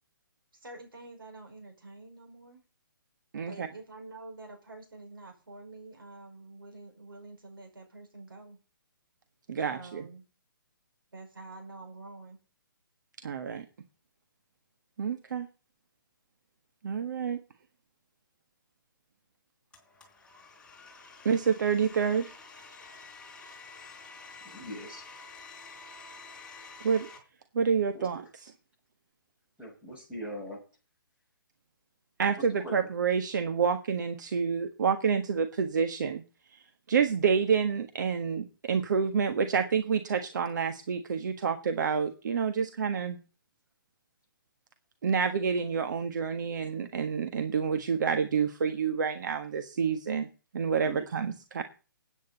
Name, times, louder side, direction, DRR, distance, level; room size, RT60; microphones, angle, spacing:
voice 1, 0.5-2.6 3.5-8.6 9.7-10.2 11.1-12.4, right 2 dB, 80° right, 3 dB, 5.3 m, -47 dB
voice 2, 3.3-3.7 9.5-10.0 13.2-13.6 15.0-15.5 16.8-17.4 21.2-22.2 26.8-27.1 27.5-28.2 32.2-36.2 36.9-43.2 45.0-50.3 50.5-51.6, right 6 dB, 55° right, 7 dB, 1.5 m, -28 dB
Domestic sounds home sounds, 19.7-27.2, left 4 dB, 5° left, 4.0 m, -49 dB
voice 3, 24.5-25.0 27.9-28.1 29.6-30.6 32.6-32.7 50.8-51.0, equal, 10° right, -1 dB, 6.0 m, -41 dB
19.5 x 9.2 x 4.1 m, 0.34 s
figure-of-eight pair, 135°, 12 cm